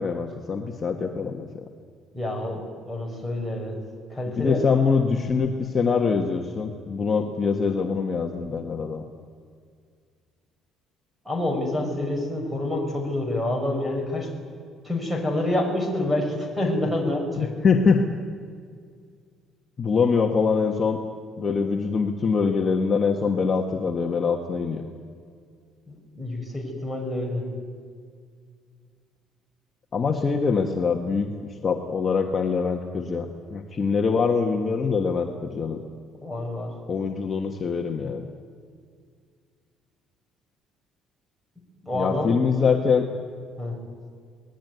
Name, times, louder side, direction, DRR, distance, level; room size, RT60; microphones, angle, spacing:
voice 1, 0.0-1.5 4.3-9.1 17.4-18.1 19.8-21.0 21.4-24.8 29.9-31.3 31.6-35.8 36.9-38.2 41.9-43.1, left 5 dB, 30° left, 2 dB, 1.5 m, -24 dB
voice 2, 2.1-3.8 4.1-4.6 11.2-14.3 14.8-17.5 25.9-27.5 36.2-36.7 41.8-42.4 43.6-43.8, left 1 dB, 5° right, 3 dB, 5.8 m, -27 dB
25.0 x 19.5 x 9.5 m, 2.1 s
cardioid pair, 140°, 0 cm